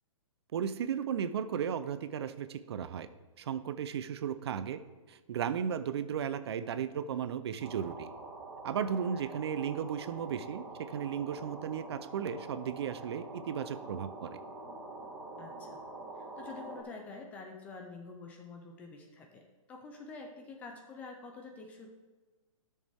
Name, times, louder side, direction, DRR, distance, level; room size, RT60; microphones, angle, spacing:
voice 1, 0.5-3.1 3.4-4.8 5.1-8.1 8.6-14.4, right 8 dB, 50° right, 13 dB, 0.5 m, -35 dB
sound 1, 7.6-16.8, right 2 dB, 15° right, 2.9 m, -46 dB
voice 2, 15.4-15.8 16.2-21.9, left 4 dB, 10° left, 3 dB, 0.3 m, -47 dB
13.0 x 6.5 x 3.4 m, 1.3 s
hypercardioid pair, 160°, 17 cm